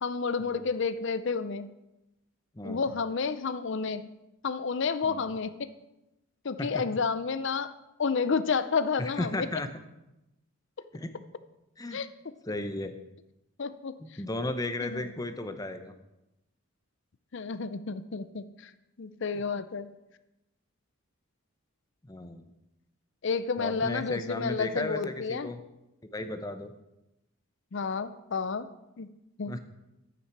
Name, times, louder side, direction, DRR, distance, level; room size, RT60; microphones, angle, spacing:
voice 1, 0.0-1.7 2.6-4.0 4.4-5.7 6.4-7.7 8.0-9.5 11.9-12.1 13.6-13.9 14.8-15.1 17.3-18.7 19.0-19.9 23.2-25.5 27.7-28.7 29.0-29.1 29.4-29.5, left 5 dB, 55° left, 12 dB, 0.5 m, -30 dB
voice 2, 2.5-2.9 5.0-5.2 6.6-6.8 9.0-9.7 10.9-11.1 11.8-12.0 12.5-13.0 14.0-15.9 22.0-22.4 23.6-25.6 26.1-26.7 29.5-29.6, left 2 dB, 15° left, 8 dB, 0.6 m, -35 dB
10.0 x 8.4 x 4.7 m, 0.93 s
head